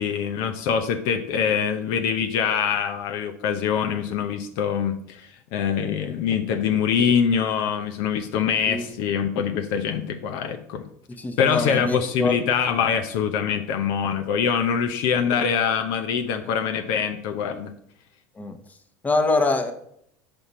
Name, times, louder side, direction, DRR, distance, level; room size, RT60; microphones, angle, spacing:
voice 1, 0.0-10.8 11.4-17.7, left 7 dB, 65° left, 6 dB, 0.7 m, -24 dB
voice 2, 11.2-12.4 18.4-18.6 19.0-19.7, left 3 dB, 20° left, 7 dB, 1.0 m, -24 dB
5.8 x 5.3 x 4.1 m, 0.70 s
hypercardioid pair, 90°, 8 cm